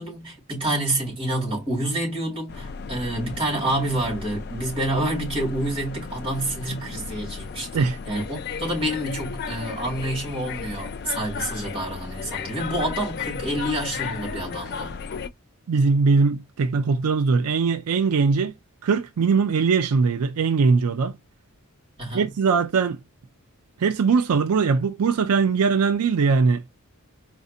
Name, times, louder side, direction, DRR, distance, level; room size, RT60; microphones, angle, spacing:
voice 1, 0.0-15.0 22.0-22.3, right 1 dB, 25° right, 2.2 m, -28 dB
sound 1, 2.5-15.3, left 5 dB, 45° left, 0.4 m, -34 dB
voice 2, 15.7-18.5 18.8-21.2 22.1-23.0 23.8-26.6, right 5 dB, 80° right, 0.4 m, -21 dB
4.2 x 2.5 x 2.7 m
head